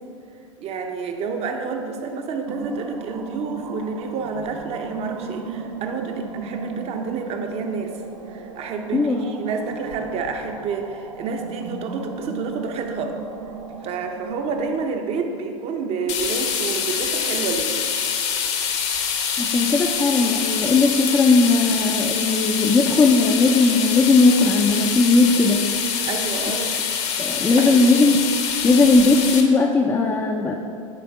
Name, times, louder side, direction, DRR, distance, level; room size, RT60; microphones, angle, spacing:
voice 1, 0.6-7.9 8.3-13.2 13.8-17.9 26.0-26.6 27.4-27.8, right 4 dB, 35° right, 4 dB, 0.8 m, -29 dB
sound 1, 2.5-14.9, right 5 dB, 70° right, 0.8 m, -36 dB
voice 2, 8.9-9.3 19.4-26.1 26.5-26.6 27.2-28.2 28.6-30.5, left 3 dB, 15° left, 0 dB, 0.5 m, -18 dB
sound 2, 16.1-29.4, left 7 dB, 40° left, 0.8 m, -25 dB
9.8 x 3.4 x 4.7 m, 2.4 s
hypercardioid pair, 95°, 17 cm